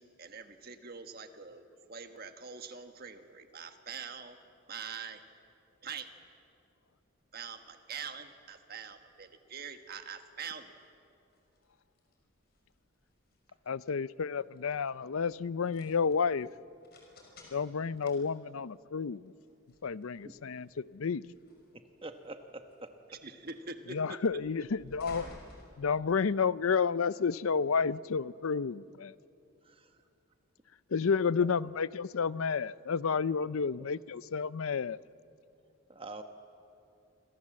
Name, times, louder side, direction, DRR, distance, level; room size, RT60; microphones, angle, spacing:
voice 1, 0.0-4.4 4.7-5.2 5.8-6.1 7.3-10.7 23.1-24.2, right 5 dB, 45° right, 1.6 m, -44 dB
sound 1, 7.1-26.5, left 1 dB, 45° left, 5.8 m, -58 dB
voice 2, 13.7-16.5 17.5-19.3 19.8-21.2 23.9-25.3 25.8-29.1 30.9-35.0, left 5 dB, 75° left, 0.5 m, -31 dB
voice 3, 21.7-22.9 29.6-30.0 31.4-31.5 33.4-33.5 35.9-36.2, right 2 dB, 25° right, 1.2 m, -46 dB
28.5 x 24.5 x 7.6 m
head